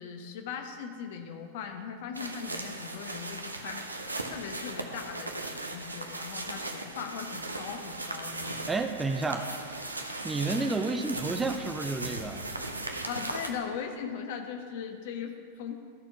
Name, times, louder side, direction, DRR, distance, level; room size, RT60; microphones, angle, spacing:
voice 1, 0.0-3.9 4.3-8.8 13.1-15.7, left 7 dB, 50° left, 5 dB, 0.9 m, -39 dB
sound 1, 2.1-13.5, right 2 dB, 80° right, 0.7 m, -38 dB
voice 2, 8.7-9.5 10.0-12.5, right 3 dB, 10° right, 6 dB, 0.5 m, -31 dB
12.5 x 4.4 x 5.7 m, 2.2 s
figure-of-eight pair, 90°, 0 cm